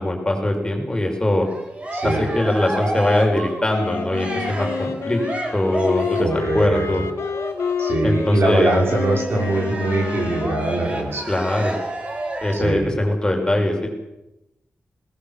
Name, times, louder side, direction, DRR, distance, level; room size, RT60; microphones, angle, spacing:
voice 1, 0.0-1.5 2.0-5.2 5.5-6.3 6.5-7.0 8.0-8.7 11.3-11.7 12.4-13.9, left 1 dB, 15° left, 2 dB, 5.7 m, -21 dB
Cheering, 1.4-6.4 7.2-12.8, right 1 dB, 30° right, 4.3 m, -31 dB
voice 2, 1.9-2.3 6.2-7.1 7.8-11.3 12.5-12.9, right 2 dB, 60° right, 1 dB, 5.9 m, -22 dB
Wind instrument woodwind instrument, 3.7-11.3, left 6 dB, 90° left, 2.0 m, -29 dB
20.5 x 19.0 x 7.4 m, 0.93 s
wide cardioid pair, 110°, 5 cm